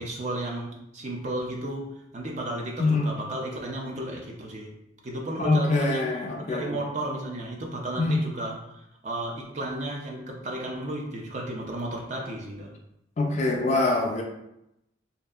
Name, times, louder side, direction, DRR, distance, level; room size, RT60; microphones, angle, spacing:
voice 1, 0.0-4.7 5.0-12.7, right 1 dB, 35° right, -1 dB, 0.4 m, -33 dB
voice 2, 5.4-6.8 8.0-8.2 13.2-14.2, left 2 dB, 35° left, 1 dB, 0.3 m, -24 dB
2.7 x 2.4 x 2.3 m, 0.85 s
head